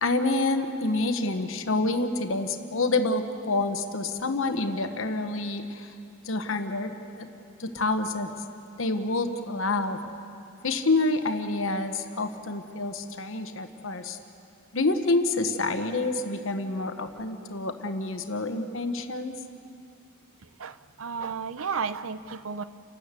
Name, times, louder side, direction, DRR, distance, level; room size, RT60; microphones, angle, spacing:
voice 1, 0.0-5.9 6.2-7.3 7.6-8.3 8.8-10.0 10.6-14.2 14.7-19.4, left 2 dB, 70° left, 7 dB, 1.2 m, -28 dB
voice 2, 20.4-22.6, right 5 dB, 80° right, 14 dB, 0.7 m, -33 dB
30.0 x 13.0 x 8.2 m, 2.6 s
head